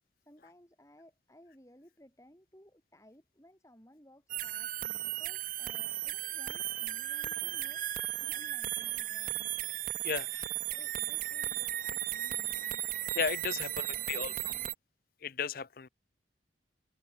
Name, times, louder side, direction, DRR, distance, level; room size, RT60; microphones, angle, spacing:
voice 1, 0.2-7.8 8.2-9.5 10.7-12.9 13.5-14.7, equal, 15° left, 6.7 m, -59 dB
sound 1, 4.3-14.7, right 13 dB, 45° right, 0.6 m, -35 dB
voice 2, 13.1-14.3 15.2-15.9, left 6 dB, 50° left, 0.6 m, -34 dB
head